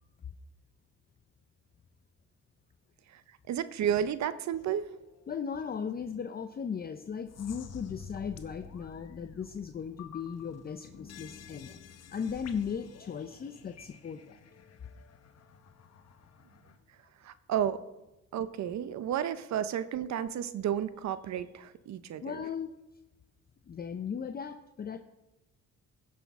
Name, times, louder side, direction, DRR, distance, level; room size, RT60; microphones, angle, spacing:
voice 1, 3.5-4.9 17.2-17.8 18.3-22.4, right 9 dB, 65° right, 14 dB, 0.6 m, -32 dB
sound 1, 4.5-5.5 6.0-6.1 6.5-6.6 7.3-16.8, left 6 dB, 55° left, 1.0 m, -51 dB
voice 2, 5.3-11.8 12.1-14.4 22.2-22.7 23.7-25.0, left 7 dB, 30° left, 8 dB, 0.5 m, -37 dB
16.0 x 6.0 x 3.6 m, 0.97 s
cardioid pair, 90°, 30 cm